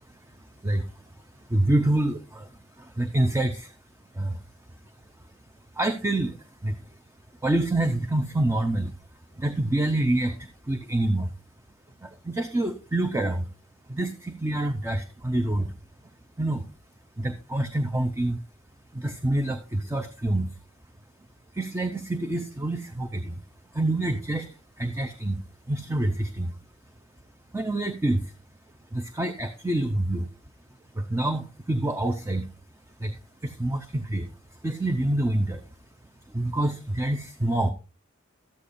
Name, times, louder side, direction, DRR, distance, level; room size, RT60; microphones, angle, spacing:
voice 1, 1.5-2.5 2.8-3.7 4.1-4.4 5.8-6.4 6.6-6.8 7.4-8.9 9.4-11.3 12.0-13.5 13.9-15.7 16.4-16.6 17.2-18.4 18.9-20.5 21.5-23.4 23.7-24.5 24.8-25.4 25.7-26.5 27.5-28.3 28.9-30.3 31.0-32.5 33.0-34.3 34.6-35.6 36.3-37.7, right 1 dB, 15° right, 7 dB, 0.5 m, -26 dB
13.0 x 8.3 x 2.5 m, 0.34 s
head